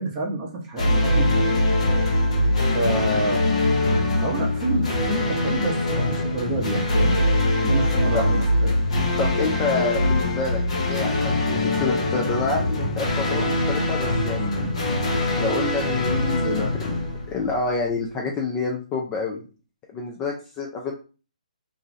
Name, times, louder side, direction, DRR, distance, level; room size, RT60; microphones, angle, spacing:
voice 1, 0.0-1.6 2.7-3.5 4.2-7.2 7.6-8.8 14.4-14.7 16.4-16.7, right 2 dB, 20° right, -2 dB, 0.8 m, -28 dB
sound 1, 0.8-17.8, left 1 dB, 55° left, 0.9 m, -23 dB
voice 2, 9.2-10.6 10.9-14.6 15.4-19.4 19.9-20.9, left 4 dB, 15° left, 0 dB, 0.4 m, -28 dB
2.6 x 2.3 x 3.1 m, 0.35 s
hypercardioid pair, 150°, 4 cm